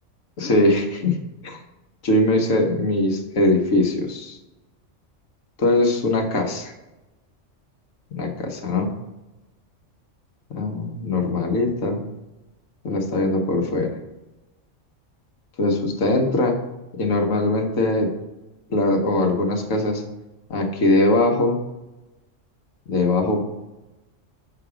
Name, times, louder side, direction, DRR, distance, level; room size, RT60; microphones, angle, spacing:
voice 1, 0.4-1.2 1.4-1.6 2.0-4.4 5.6-6.7 8.2-8.9 10.5-12.0 12.8-14.0 15.6-16.6 17.0-18.1 18.7-20.0 20.5-21.6 22.9-23.6, left 2 dB, 85° left, 1 dB, 1.5 m, -21 dB
5.9 x 5.9 x 4.9 m, 1.0 s
omnidirectional pair, 1.3 m